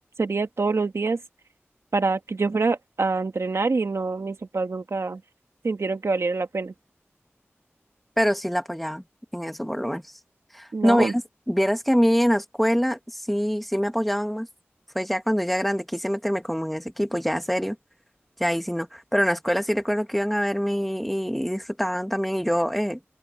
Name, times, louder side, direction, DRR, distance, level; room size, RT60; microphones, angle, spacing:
voice 1, 0.2-1.2 1.9-5.2 5.6-6.7 10.7-11.1, right 3 dB, 80° right, 1.8 m, -25 dB
voice 2, 8.2-9.0 9.3-10.0 10.5-11.2 11.5-14.5 15.0-17.8 18.4-23.1, equal, ahead, 1.8 m, -24 dB
wide cardioid pair, 45°, 5 cm